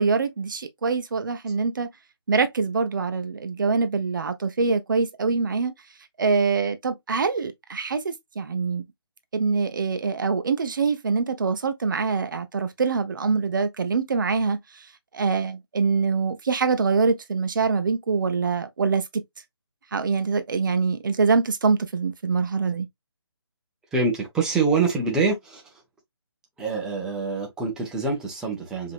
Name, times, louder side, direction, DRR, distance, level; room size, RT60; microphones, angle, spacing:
voice 1, 0.0-1.9 2.3-5.7 6.2-8.8 9.3-14.9 15.1-19.2 19.9-22.9, right 4 dB, 50° right, 0.8 m, -24 dB
voice 2, 23.9-25.6 26.6-28.9, right 4 dB, 5° right, 0.7 m, -25 dB
5.0 x 2.9 x 2.4 m
figure-of-eight pair, 150°, 14 cm